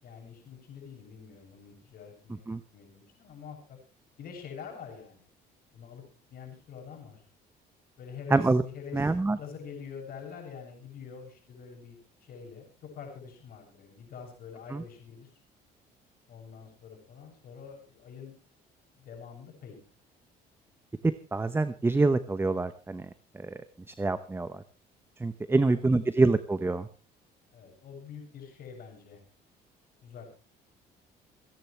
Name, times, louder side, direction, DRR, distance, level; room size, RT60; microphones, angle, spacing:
voice 1, 0.0-3.8 4.2-5.3 5.7-6.0 6.3-7.2 8.0-15.3 16.3-18.3 19.0-19.8 25.5-26.0 27.5-29.2 30.0-30.3, left 6 dB, 60° left, 2 dB, 7.3 m, -46 dB
voice 2, 8.3-8.6 8.9-9.4 14.7-14.8 21.0-23.1 23.3-23.5 23.9-24.6 25.2-26.9, right 3 dB, 15° right, 12 dB, 0.9 m, -26 dB
28.0 x 10.5 x 3.3 m, 0.33 s
cardioid pair, 110°, 17 cm